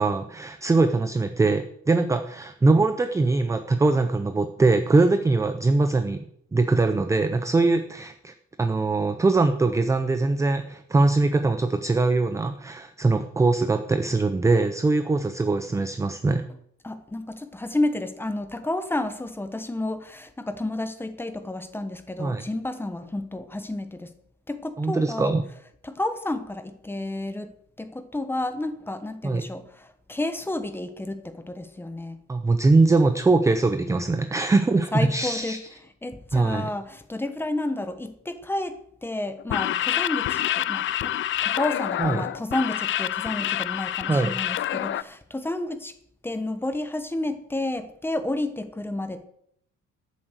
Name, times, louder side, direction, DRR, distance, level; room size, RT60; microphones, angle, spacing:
voice 1, 0.0-6.3 6.5-8.3 8.6-16.5 22.2-22.4 24.8-25.4 29.2-29.4 32.3-35.6 36.3-36.7 42.0-42.2 44.1-44.3, right 3 dB, 10° right, 9 dB, 0.5 m, -22 dB
voice 2, 16.8-24.1 24.5-25.4 25.8-32.2 34.9-35.6 36.0-41.1 41.4-45.9 46.2-49.2, left 2 dB, 5° left, 10 dB, 1.0 m, -31 dB
sound 1, 39.4-45.0, left 12 dB, 45° left, 0.4 m, -27 dB
12.5 x 7.4 x 8.0 m, 0.69 s
cardioid pair, 175°, 30 cm